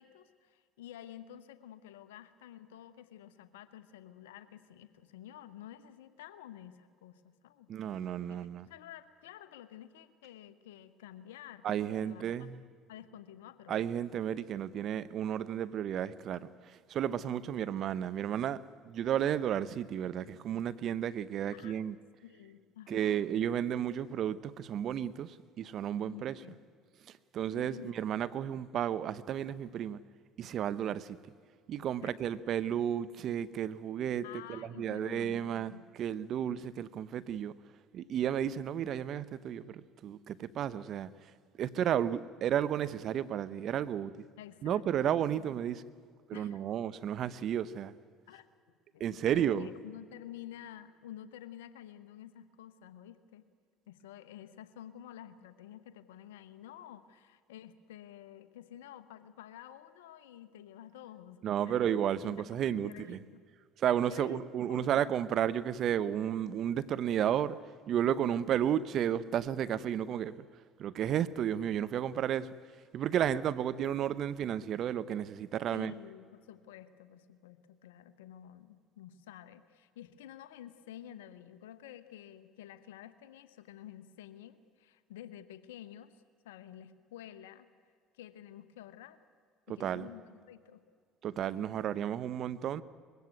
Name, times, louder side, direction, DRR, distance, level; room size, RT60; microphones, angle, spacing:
voice 1, 0.0-7.7 8.3-8.4 8.7-12.5 12.9-13.8 21.5-22.0 22.2-23.2 26.1-26.6 27.5-28.0 32.0-32.1 34.2-35.9 44.4-45.5 46.3-46.6 48.3-48.4 48.9-53.5 53.9-63.4 64.1-64.4 64.7-65.1 75.7-87.7 88.1-89.2 89.7-90.8, left 11 dB, 85° left, 1.0 m, -50 dB
voice 2, 7.7-8.7 11.6-12.6 13.7-18.6 18.9-22.0 22.9-26.4 27.3-30.0 30.4-31.2 31.7-37.5 37.9-41.1 41.6-44.1 44.6-45.8 46.3-47.9 49.0-49.7 61.4-63.2 63.8-67.6 67.9-70.3 70.8-72.5 72.9-75.9 89.8-90.1 91.2-92.8, right 10 dB, 55° right, 0.7 m, -32 dB
21.5 x 16.0 x 9.4 m
hypercardioid pair, 70°, 0 cm